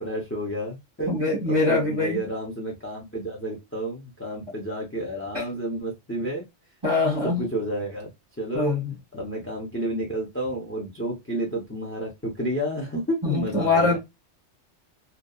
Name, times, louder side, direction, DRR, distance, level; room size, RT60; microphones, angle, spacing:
voice 1, 0.0-6.4 7.2-8.1 8.4-8.7 9.1-14.0, right 1 dB, 15° left, 0.4 m, -31 dB
voice 2, 1.1-2.2 5.3-5.4 6.8-7.4 8.5-8.9 13.2-14.0, left 3 dB, 25° right, 1.0 m, -23 dB
2.7 x 2.3 x 2.3 m
omnidirectional pair, 1.2 m